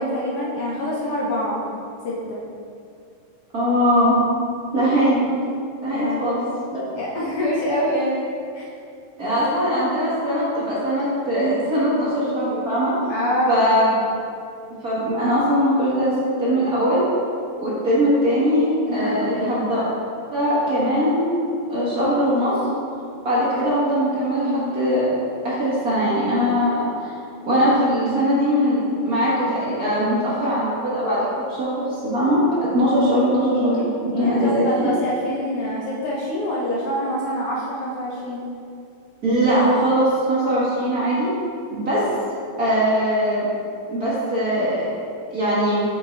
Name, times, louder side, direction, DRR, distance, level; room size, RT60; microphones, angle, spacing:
voice 1, 0.0-1.6 2.0-2.4 5.9-6.3 6.9-8.3 8.5-8.6 13.1-13.8 18.9-19.6 32.8-32.9 34.1-38.4, equal, 70° left, -5 dB, 1.4 m, -25 dB
voice 2, 3.5-4.2 4.7-5.2 5.8-6.4 6.7-6.8 9.2-12.9 13.5-13.9 14.8-16.1 16.4-17.0 17.6-19.8 20.3-21.3 21.7-22.5 23.2-25.0 25.4-27.1 27.5-34.9 39.2-41.3 41.7-42.0 42.6-43.5 43.9-44.8 45.3-45.8, equal, 40° right, -10 dB, 1.3 m, -21 dB
7.7 x 5.4 x 3.2 m, 2.4 s
omnidirectional pair, 3.6 m